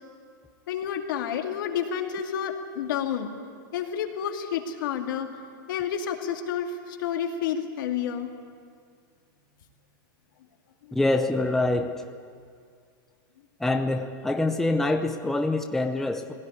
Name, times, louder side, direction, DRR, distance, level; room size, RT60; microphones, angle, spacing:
voice 1, 0.7-3.3 3.7-5.3 5.7-8.3, left 8 dB, 70° left, 3 dB, 2.4 m, -30 dB
voice 2, 10.9-12.0 13.6-16.3, left 2 dB, 5° left, 5 dB, 0.7 m, -25 dB
19.0 x 17.5 x 9.9 m, 2.2 s
supercardioid pair, 160°, 11 cm